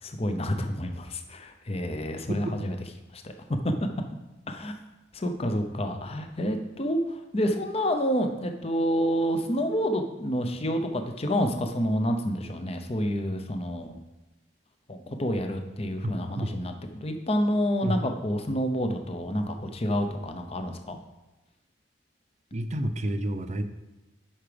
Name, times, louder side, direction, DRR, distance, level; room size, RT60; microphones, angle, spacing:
voice 1, 0.0-2.7 3.1-3.3 3.6-3.7 4.5-4.7 5.1-14.0 14.9-21.0, equal, 35° left, 5 dB, 0.8 m, -28 dB
voice 2, 22.5-23.7, right 1 dB, 40° right, 9 dB, 0.6 m, -29 dB
8.6 x 5.9 x 5.1 m, 1.1 s
head